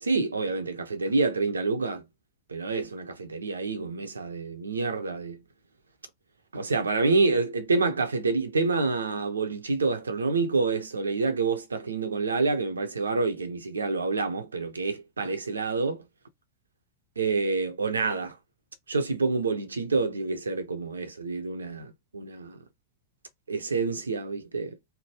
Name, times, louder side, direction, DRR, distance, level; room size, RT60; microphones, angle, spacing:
voice 1, 0.0-2.0 2.5-5.4 6.5-16.0 17.2-18.4 18.9-22.6 23.5-24.8, right 3 dB, 75° right, 0.8 m, -27 dB
3.5 x 2.2 x 2.8 m
figure-of-eight pair, 90°, 0 cm